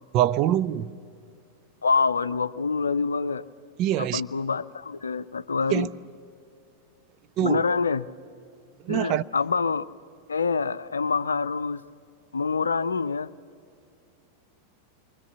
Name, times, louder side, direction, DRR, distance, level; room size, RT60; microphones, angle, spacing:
voice 1, 0.1-0.9 3.8-4.2 5.7-5.9 7.4-7.6 8.9-9.2, right 12 dB, 40° right, 0.6 m, -23 dB
voice 2, 1.8-3.5 4.0-5.9 7.4-8.1 8.9-9.9 10.3-11.8 12.3-13.3, left 4 dB, 75° left, 0.5 m, -26 dB
28.0 x 23.5 x 6.9 m
figure-of-eight pair, 90°, 0 cm